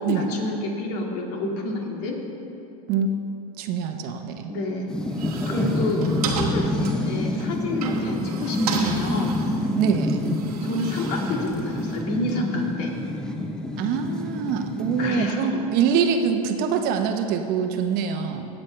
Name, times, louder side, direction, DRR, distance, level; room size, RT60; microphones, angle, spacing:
voice 1, 0.0-2.2 4.5-4.9 5.4-9.4 10.6-12.9 15.0-15.6, left 2 dB, 60° left, 0 dB, 2.0 m, -29 dB
voice 2, 3.6-4.5 9.7-10.2 13.8-18.5, right 7 dB, 50° right, 6 dB, 0.9 m, -24 dB
sound 1, 4.9-15.3, left 1 dB, 5° left, 0.7 m, -27 dB
sound 2, 5.0-12.0, right 5 dB, 90° right, 1.2 m, -33 dB
17.5 x 7.4 x 3.3 m, 2.7 s
hypercardioid pair, 105°, 19 cm